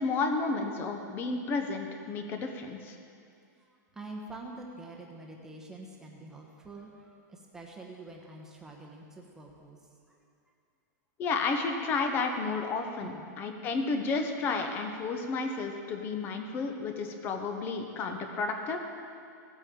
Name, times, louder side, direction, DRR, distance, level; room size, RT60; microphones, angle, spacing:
voice 1, 0.0-3.0 11.2-19.1, left 4 dB, 20° left, 5 dB, 0.9 m, -32 dB
voice 2, 3.7-9.8 10.1-10.2 13.0-13.3, right 2 dB, 5° right, -1 dB, 1.1 m, -46 dB
17.0 x 8.1 x 3.8 m, 2.4 s
supercardioid pair, 170°, 10 cm